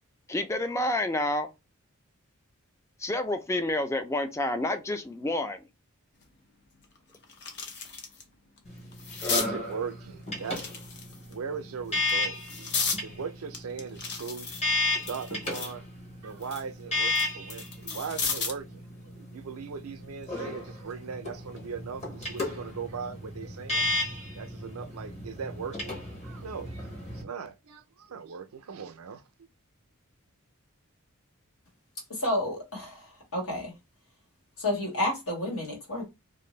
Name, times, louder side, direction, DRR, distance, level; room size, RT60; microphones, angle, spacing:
voice 1, 0.3-1.5 3.0-5.6, left 1 dB, 15° left, 0.4 m, -29 dB
sound 1, 6.2-6.3 6.8-8.2 8.6-9.5 10.4-11.3 11.9-13.0 13.5-15.8 16.2-18.7 20.0-20.2, left 5 dB, 55° left, 0.6 m, -34 dB
sound 2, 8.6-27.2, left 2 dB, 30° left, 1.0 m, -34 dB
voice 2, 9.3-10.8 11.3-12.7 13.0-14.5 15.0-15.8 16.2-23.9 24.3-29.5, right 6 dB, 80° right, 0.4 m, -39 dB
voice 3, 32.1-33.7 34.6-36.1, left 1 dB, 75° left, 1.5 m, -30 dB
2.6 x 2.5 x 3.0 m
head